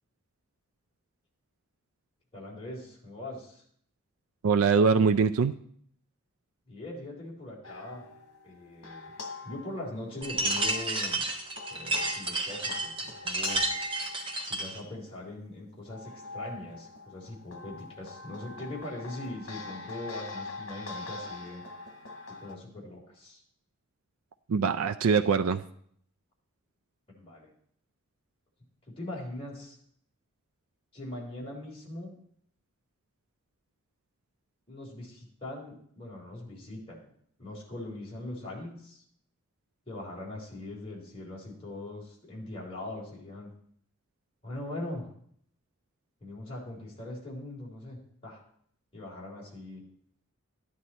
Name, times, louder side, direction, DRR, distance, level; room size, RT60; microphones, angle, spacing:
voice 1, 2.3-3.6 6.7-8.0 8.4-9.1 9.4-11.2 11.7-13.6 14.5-21.6 22.4-23.4 27.1-27.5 28.9-29.8 30.9-32.1 34.7-37.1 37.4-39.0 39.9-43.5 44.4-45.1 46.2-48.4 48.9-49.8, left 1 dB, 25° left, 3.4 m, -41 dB
voice 2, 4.4-5.5 24.5-25.6, right 5 dB, 80° right, 0.4 m, -23 dB
sound 1, 7.6-15.1 15.7-22.6, left 3 dB, 65° left, 1.7 m, -43 dB
sound 2, 10.2-14.8, right 2 dB, 25° right, 1.3 m, -31 dB
13.0 x 9.5 x 4.2 m
head